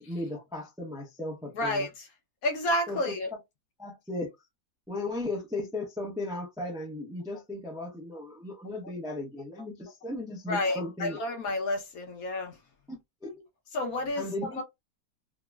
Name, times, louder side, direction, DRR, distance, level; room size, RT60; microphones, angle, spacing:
voice 1, 0.1-1.9 2.9-3.0 3.8-4.3 4.9-11.2 12.9-13.4 14.2-14.6, left 2 dB, 5° right, 0.5 m, -36 dB
voice 2, 1.5-2.1 2.4-3.3 10.5-12.5 13.7-14.2 14.5-14.6, left 1 dB, 65° left, 1.2 m, -30 dB
3.8 x 2.0 x 2.3 m
omnidirectional pair, 1.7 m